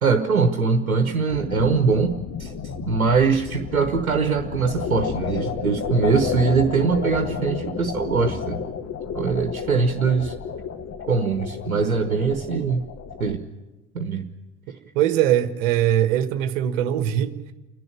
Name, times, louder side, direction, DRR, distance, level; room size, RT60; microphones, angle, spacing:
voice 1, 0.0-2.1 2.4-2.5 2.8-8.6 9.1-10.3 11.1-12.9 13.2-13.4 13.9-14.3, right 5 dB, 85° right, 1.2 m, -22 dB
sound 1, 1.3-13.4, left 6 dB, 35° left, 1.7 m, -31 dB
voice 2, 14.9-17.5, right 11 dB, 60° right, 1.5 m, -21 dB
29.0 x 11.0 x 9.9 m
figure-of-eight pair, 65°, 41 cm